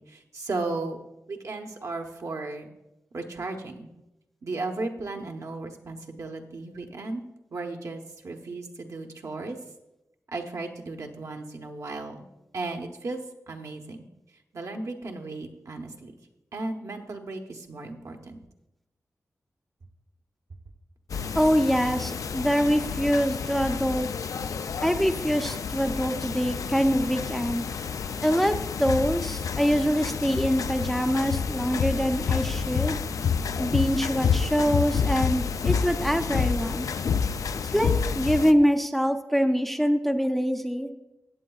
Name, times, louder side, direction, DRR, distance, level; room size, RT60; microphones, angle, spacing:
voice 1, 0.1-1.0 1.3-2.7 3.1-3.9 4.4-7.2 7.5-9.6 10.3-12.3 12.5-13.2 13.5-14.0 14.5-16.1 16.5-18.4, right 3 dB, 65° right, 3 dB, 1.0 m, -35 dB
sound 1, 21.1-38.5, left 6 dB, 80° left, 0.3 m, -29 dB
voice 2, 21.4-24.1 24.8-27.6 28.2-33.0 33.5-36.9 37.7-40.9, equal, ahead, 6 dB, 0.5 m, -24 dB
15.5 x 8.5 x 2.4 m, 0.93 s
wide cardioid pair, 130°, 6 cm